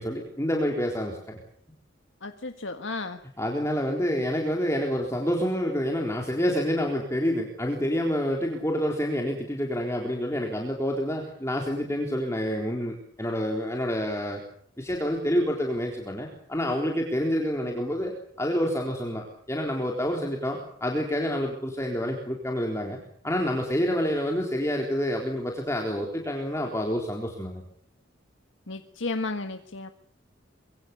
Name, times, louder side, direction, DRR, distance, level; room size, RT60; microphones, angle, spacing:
voice 1, 0.0-1.4 3.4-14.4 14.8-18.1 18.4-23.0 23.2-27.6, equal, 15° left, 1 dB, 3.8 m, -28 dB
voice 2, 2.2-3.2 28.7-29.9, left 3 dB, 75° left, 6 dB, 1.8 m, -33 dB
25.5 x 23.5 x 6.9 m, 0.64 s
head